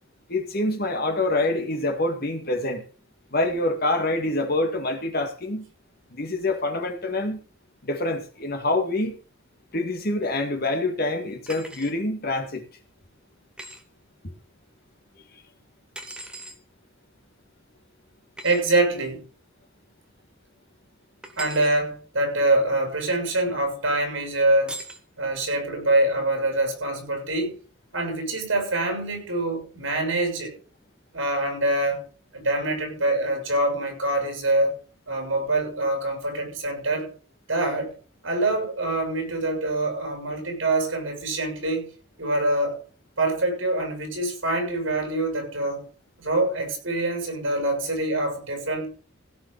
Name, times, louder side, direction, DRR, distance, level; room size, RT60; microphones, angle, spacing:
voice 1, 0.3-2.8 3.3-5.7 6.1-7.4 7.8-9.2 9.7-12.6, left 2 dB, 50° left, 2.2 m, -26 dB
sound 1, 11.5-11.9 13.6-13.8 15.9-16.6 18.4-18.6 21.2-21.8 24.7-25.0, right 1 dB, 5° right, 1.5 m, -39 dB
voice 2, 18.4-19.2 21.4-24.8 25.2-27.5 27.9-30.5 31.1-32.0 32.3-34.8 35.1-37.1 37.5-37.9 38.2-41.9 42.2-42.8 43.2-45.9 46.2-48.9, right 2 dB, 70° right, 6.7 m, -25 dB
16.5 x 5.7 x 6.8 m
head